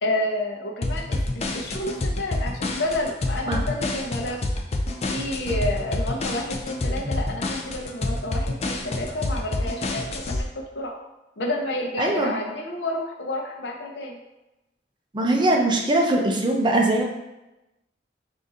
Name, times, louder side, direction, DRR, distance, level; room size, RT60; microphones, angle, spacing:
voice 1, 0.0-4.4 5.1-10.9 11.4-14.2, left 1 dB, 70° left, 1 dB, 0.7 m, -30 dB
sound 1, 0.8-10.4, left 2 dB, 35° left, 0.4 m, -27 dB
voice 2, 12.0-12.3 15.1-17.1, right 1 dB, 25° right, 1 dB, 0.6 m, -21 dB
3.8 x 2.7 x 3.8 m, 0.98 s
head